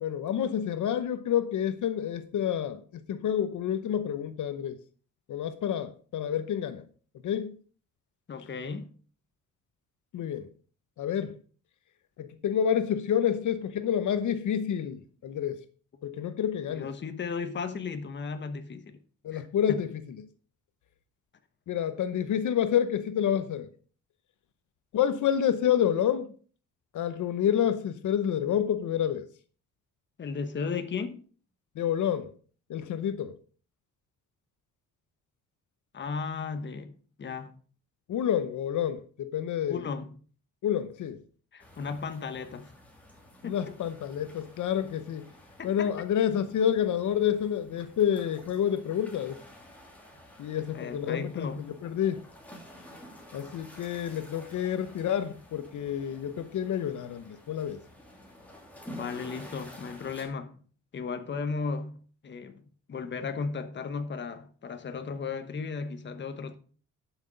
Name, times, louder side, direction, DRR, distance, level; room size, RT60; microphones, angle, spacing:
voice 1, 0.0-4.8 5.3-6.8 7.2-7.5 10.1-10.5 11.0-11.3 12.2-15.6 16.0-16.9 19.2-19.9 21.7-23.7 24.9-26.3 26.9-29.3 31.8-32.3 32.7-33.3 38.1-39.8 40.6-41.2 43.4-45.2 45.6-49.4 50.4-51.5 51.8-52.2 53.3-57.8, left 9 dB, 65° left, 0.9 m, -28 dB
voice 2, 8.3-8.9 15.9-16.0 16.7-19.0 19.3-19.5 30.2-31.2 35.9-37.5 39.7-40.1 41.5-42.7 43.4-43.6 45.6-45.9 50.7-51.7 58.9-60.6 60.9-66.6, left 5 dB, 35° left, 1.1 m, -35 dB
sound 1, 41.6-60.3, left 1 dB, 5° left, 2.8 m, -51 dB
11.5 x 6.3 x 5.2 m
cardioid pair, 150°, 32 cm